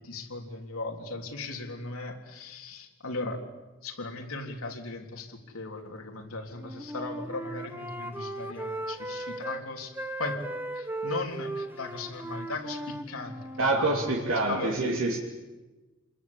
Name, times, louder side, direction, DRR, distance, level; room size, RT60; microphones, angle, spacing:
voice 1, 0.0-3.4 3.8-9.9 10.2-10.4 10.7-14.9, left 3 dB, 80° left, 3 dB, 3.4 m, -38 dB
Wind instrument woodwind instrument, 6.6-9.6 9.9-13.7, right 1 dB, 10° right, 1.4 m, -37 dB
voice 2, 13.6-15.2, right 2 dB, 75° right, -1 dB, 3.1 m, -26 dB
28.0 x 21.5 x 8.6 m, 1.2 s
head